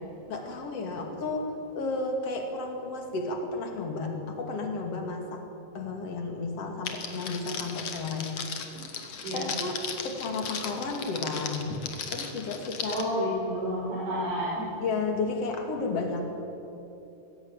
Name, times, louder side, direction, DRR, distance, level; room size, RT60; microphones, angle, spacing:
voice 1, 0.3-5.4 5.7-8.7 9.3-11.8 12.1-13.0 14.8-16.3, left 3 dB, 45° left, 3 dB, 2.3 m, -33 dB
Crackle, 6.9-13.0, left 6 dB, 75° left, 1.5 m, -37 dB
voice 2, 12.9-14.7, equal, 85° right, -7 dB, 8.0 m, -30 dB
22.5 x 16.0 x 8.9 m, 3.0 s
omnidirectional pair, 5.9 m